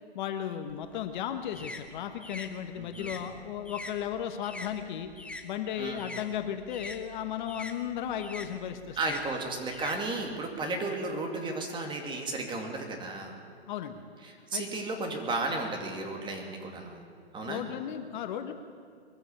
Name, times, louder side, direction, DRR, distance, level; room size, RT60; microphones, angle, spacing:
voice 1, 0.1-5.1 5.4-9.0 10.7-10.8 13.7-14.0 14.5-14.6 17.4-18.5, left 9 dB, 45° left, 8 dB, 1.3 m, -35 dB
sound 1, 0.7-5.5 5.8-10.6, left 2 dB, 5° left, 0.9 m, -44 dB
voice 2, 2.8-3.2 5.8-6.0 9.0-13.4 14.2-17.0 17.3-17.6, right 2 dB, 15° right, 3 dB, 2.5 m, -34 dB
22.0 x 15.0 x 8.7 m, 2.2 s
hypercardioid pair, 140°, 33 cm